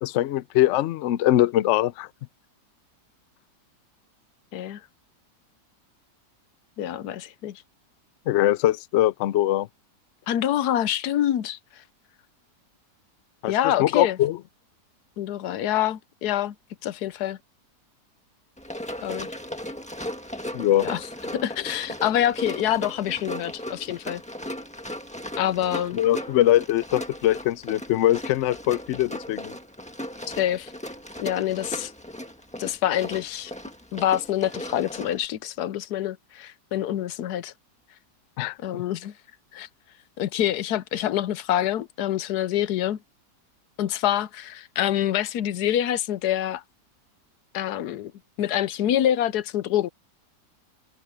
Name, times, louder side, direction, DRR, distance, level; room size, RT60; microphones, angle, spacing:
voice 1, 0.0-2.1 8.3-9.7 13.4-14.4 20.5-20.9 25.9-29.5 38.4-38.8, left 14 dB, 90° left, 0.6 m, -22 dB
voice 2, 6.8-7.6 10.3-11.6 13.5-14.2 15.2-16.5 16.8-17.4 19.0-19.3 20.8-21.1 21.3-24.2 25.4-26.0 30.4-30.7 31.2-31.9 32.6-33.5 33.9-37.5 38.6-39.1 39.5-39.7 40.2-43.0 43.8-46.6 47.5-48.1 48.4-49.9, left 11 dB, 75° left, 1.2 m, -26 dB
Run, 18.6-35.3, left 1 dB, 5° left, 1.4 m, -37 dB
omnidirectional pair, 1.8 m